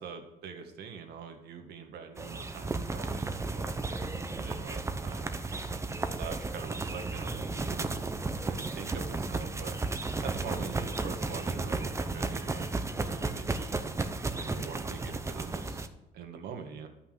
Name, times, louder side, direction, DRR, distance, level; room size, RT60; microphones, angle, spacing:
voice 1, 0.0-5.5 6.2-7.9 8.4-9.8 10.2-13.8 14.4-16.9, right 6 dB, 70° right, 5 dB, 1.8 m, -44 dB
sound 1, 2.2-15.9, right 3 dB, 15° right, 0.9 m, -34 dB
12.0 x 5.7 x 7.6 m, 0.98 s
cardioid pair, 110°, 17 cm